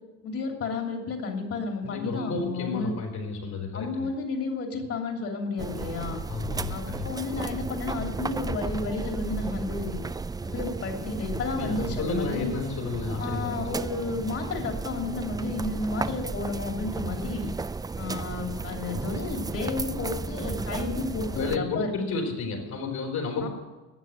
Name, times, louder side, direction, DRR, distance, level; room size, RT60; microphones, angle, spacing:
voice 1, 0.2-2.9 3.7-6.2 6.7-10.0 10.4-12.5 13.2-17.5 18.0-21.9 23.4-23.5, left 3 dB, 50° left, 2 dB, 3.0 m, -32 dB
voice 2, 1.8-4.1 6.3-7.1 11.3-13.8 21.3-23.5, left 4 dB, 70° left, 2 dB, 4.6 m, -32 dB
sound 1, 5.6-21.6, right 4 dB, 15° right, 0.4 m, -34 dB
13.0 x 9.1 x 8.0 m, 1.2 s
cardioid pair, 135°, 30 cm